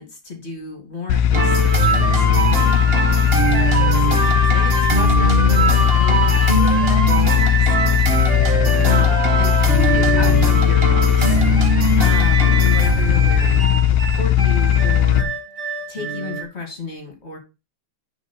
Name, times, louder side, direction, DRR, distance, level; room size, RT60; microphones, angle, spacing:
voice 1, 0.0-2.3 2.8-7.7 8.8-11.4 12.0-15.3 15.9-17.4, left 3 dB, 25° left, 3 dB, 2.0 m, -33 dB
sound 1, 1.1-15.2, left 10 dB, 85° left, 2.3 m, -17 dB
sound 2, 1.3-16.4, right 3 dB, 30° right, 1.3 m, -21 dB
10.5 x 4.6 x 5.4 m, 0.28 s
omnidirectional pair, 3.3 m